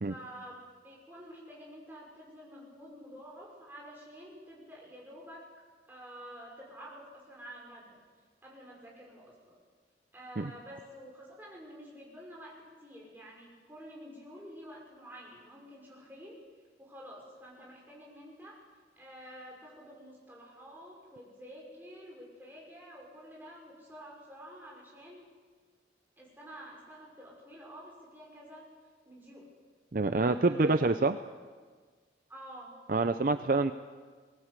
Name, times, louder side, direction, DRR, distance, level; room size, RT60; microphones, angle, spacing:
voice 1, 0.1-5.4 5.9-8.0 8.4-9.5 10.1-16.4 16.8-18.6 19.0-25.2 26.2-28.7 29.1-29.5 30.2-30.7 32.3-32.7, equal, 10° right, -3 dB, 6.0 m, -49 dB
voice 2, 29.9-31.2 32.9-33.7, right 3 dB, 50° right, 10 dB, 0.6 m, -26 dB
21.5 x 18.5 x 8.3 m, 1.5 s
head